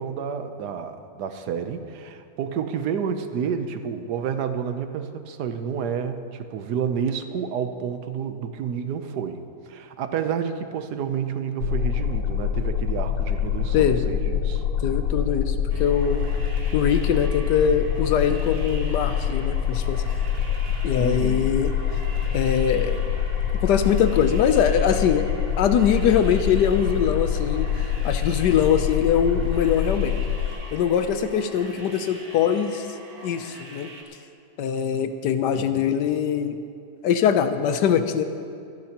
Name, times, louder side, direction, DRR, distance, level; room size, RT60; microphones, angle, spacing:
voice 1, 0.0-14.6 21.0-21.5 35.5-35.9, right 7 dB, 70° right, 8 dB, 1.3 m, -30 dB
sound 1, 11.6-30.5, left 8 dB, 90° left, 1.5 m, -25 dB
voice 2, 13.7-14.1 14.8-16.2 16.7-20.0 20.8-21.7 22.3-23.0 23.6-25.3 25.6-27.7 28.0-30.2 30.7-32.9 33.2-33.9 34.6-36.6 37.0-38.2, left 8 dB, 70° left, 9 dB, 1.2 m, -22 dB
sound 2, 15.7-34.0, right 2 dB, 40° right, 1.4 m, -44 dB
25.0 x 10.5 x 2.9 m, 2.5 s
omnidirectional pair, 2.0 m